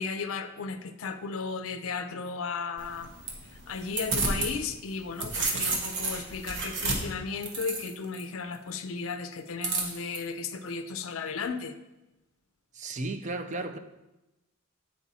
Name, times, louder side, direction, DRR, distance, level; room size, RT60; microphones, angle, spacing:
voice 1, 0.0-3.1 3.4-11.7, left 5 dB, 65° left, 8 dB, 0.5 m, -35 dB
sound 1, 2.8-4.5 4.9-8.2 9.6-10.2, right 3 dB, 55° right, 1.1 m, -31 dB
voice 2, 12.7-13.8, right 2 dB, 35° right, 8 dB, 0.4 m, -34 dB
7.2 x 4.5 x 4.1 m, 0.99 s
head